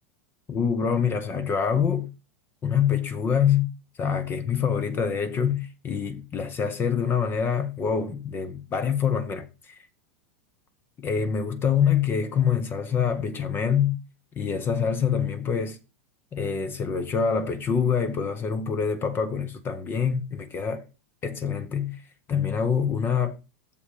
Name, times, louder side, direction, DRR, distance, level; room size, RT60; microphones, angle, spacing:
voice 1, 0.5-2.1 2.6-3.7 4.0-9.8 11.0-14.0 14.3-15.8 16.3-20.8 21.2-22.0 22.3-23.4, left 7 dB, 30° left, 1.0 m, -25 dB
7.0 x 4.4 x 6.8 m
hypercardioid pair, 105°, 7 cm